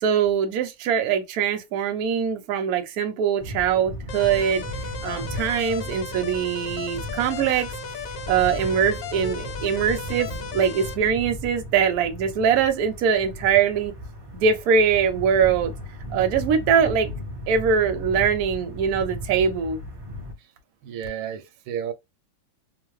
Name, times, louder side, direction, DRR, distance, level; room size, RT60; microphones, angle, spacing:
voice 1, 0.0-4.7 5.0-7.7 8.3-13.9 14.3-15.7 16.1-17.1 17.5-19.8, right 7 dB, 65° right, 1.0 m, -22 dB
sound 1, 3.4-20.3, left 1 dB, 20° right, 0.7 m, -36 dB
sound 2, 4.1-11.0, left 5 dB, 70° left, 1.2 m, -36 dB
voice 2, 20.8-21.9, right 9 dB, 90° right, 1.4 m, -32 dB
3.6 x 2.2 x 3.0 m
omnidirectional pair, 2.2 m